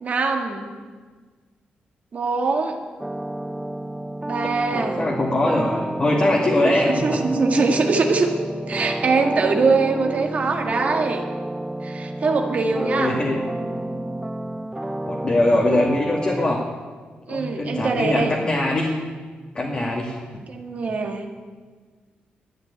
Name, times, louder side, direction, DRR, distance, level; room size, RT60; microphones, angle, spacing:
voice 1, 0.0-0.7 2.1-2.8 4.3-5.0 6.6-8.3 8.7-11.3 11.8-13.2 17.3-18.3 20.5-21.3, right 4 dB, 45° right, 3 dB, 1.9 m, -22 dB
sound 1, 3.0-16.5, right 1 dB, 10° right, 0.6 m, -30 dB
voice 2, 5.0-7.0 7.6-7.7 13.0-13.4 15.0-16.6 17.3-18.9 19.5-20.2, left 1 dB, 30° left, -3 dB, 2.3 m, -21 dB
12.5 x 9.9 x 10.0 m, 1.5 s
wide cardioid pair, 135°, 3 cm